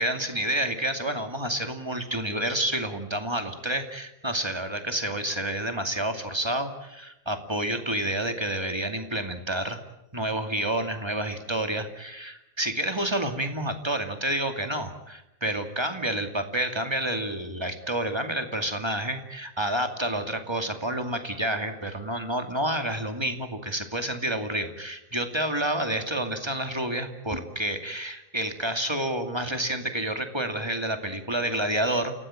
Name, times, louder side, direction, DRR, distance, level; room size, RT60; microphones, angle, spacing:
voice 1, 0.0-9.8 10.1-32.1, right 1 dB, 10° right, 6 dB, 1.4 m, -29 dB
29.5 x 17.5 x 8.9 m, 0.92 s
omnidirectional pair, 4.2 m